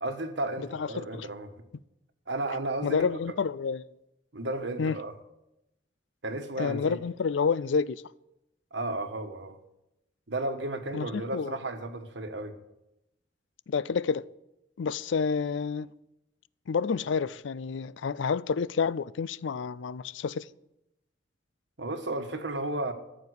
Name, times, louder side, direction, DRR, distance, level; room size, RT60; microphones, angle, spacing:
voice 1, 0.0-1.5 2.3-3.1 4.3-5.1 6.2-7.0 8.7-9.6 10.3-12.6 21.8-22.9, right 2 dB, 70° right, 1.4 m, -33 dB
voice 2, 0.7-1.3 2.8-3.8 4.8-5.0 6.6-8.0 10.9-11.5 13.7-14.2 14.8-15.9 16.7-20.5, left 5 dB, 80° left, 0.4 m, -29 dB
14.0 x 7.1 x 8.1 m
head